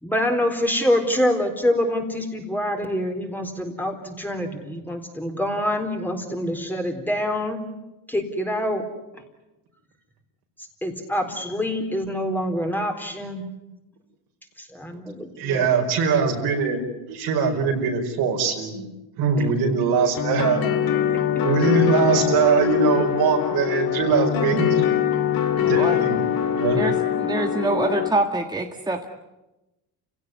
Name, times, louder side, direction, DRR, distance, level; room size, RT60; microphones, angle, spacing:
voice 1, 0.0-7.6 8.1-8.8 10.8-13.4 14.6-15.7, left 1 dB, 5° left, 3 dB, 4.0 m, -25 dB
voice 2, 15.4-16.8 17.1-18.9 19.2-20.6 21.4-24.8 25.7-26.2 26.5-26.8, right 5 dB, 75° right, 2 dB, 5.3 m, -22 dB
sound 1, 20.1-28.1, left 9 dB, 65° left, 2.6 m, -23 dB
voice 3, 25.6-26.0 26.7-29.1, right 2 dB, 10° right, 3 dB, 1.7 m, -25 dB
29.0 x 17.0 x 9.6 m, 1.0 s
cardioid pair, 110°, 38 cm